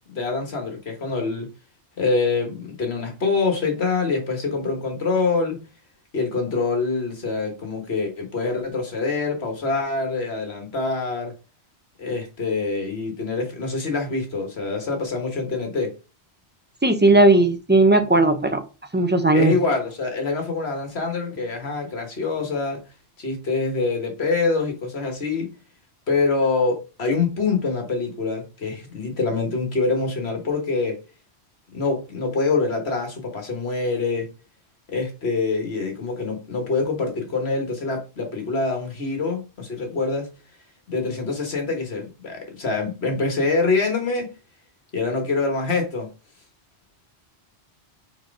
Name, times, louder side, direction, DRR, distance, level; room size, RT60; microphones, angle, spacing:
voice 1, 0.1-1.5 2.0-5.6 6.1-11.3 12.0-15.9 19.3-22.8 23.2-25.5 26.1-31.0 31.7-34.3 34.9-40.3 40.9-44.3 44.9-46.1, left 3 dB, 70° left, 1.8 m, -25 dB
voice 2, 16.8-18.6 18.9-19.5, right 2 dB, 10° right, 0.7 m, -16 dB
4.8 x 4.3 x 4.8 m
omnidirectional pair, 1.1 m